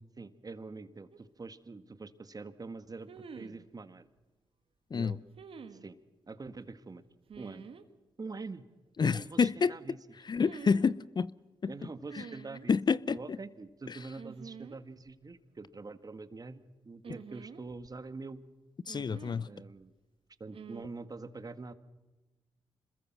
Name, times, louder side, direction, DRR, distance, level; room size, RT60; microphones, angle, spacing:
voice 1, 0.2-4.1 4.9-5.2 5.7-6.0 6.3-7.0 7.4-7.6 8.2-8.6 9.0-10.0 11.7-12.7 13.1-18.4 19.5-19.9 20.4-21.7, right 3 dB, 40° right, 1.8 m, -45 dB
sound 1, 1.1-1.2 3.1-3.6 5.4-5.8 7.3-7.9 10.4-10.9 12.1-12.7 14.2-14.8 15.1-15.2 17.0-18.0 18.9-19.5 20.5-20.8, right 6 dB, 65° right, 1.7 m, -48 dB
voice 2, 9.0-9.7 10.3-11.3 11.6-11.7 12.1-12.2 12.7-13.2 13.9-14.0 18.9-19.5, left 5 dB, 45° left, 0.7 m, -28 dB
26.5 x 21.5 x 6.1 m
supercardioid pair, 45°, 10 cm